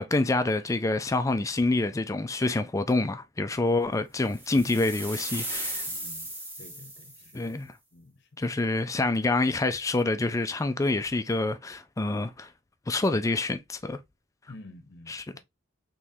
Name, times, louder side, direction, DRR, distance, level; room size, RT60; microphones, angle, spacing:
voice 1, 0.0-5.8 7.3-7.7 8.4-12.5 12.9-14.0 15.1-15.2, left 2 dB, 15° left, 0.3 m, -27 dB
sound 1, 4.3-7.4, right 1 dB, 10° right, 0.9 m, -36 dB
voice 2, 5.9-6.3 6.6-7.5 7.9-8.3 14.5-15.4, left 2 dB, 55° left, 0.8 m, -50 dB
3.6 x 3.0 x 2.7 m
head